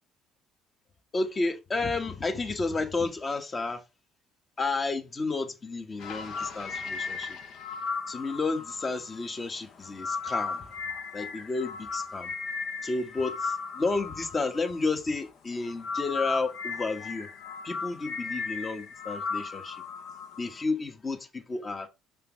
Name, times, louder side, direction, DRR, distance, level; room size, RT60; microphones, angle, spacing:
voice 1, 1.1-3.8 4.6-7.4 8.1-10.7 11.1-12.3 12.8-17.3 17.6-19.8 20.4-21.9, left 3 dB, 30° left, 1.4 m, -31 dB
sound 1, 6.0-15.3 15.6-20.6, left 5 dB, 60° left, 1.0 m, -36 dB
6.1 x 5.5 x 3.9 m
hypercardioid pair, 60°, 0 cm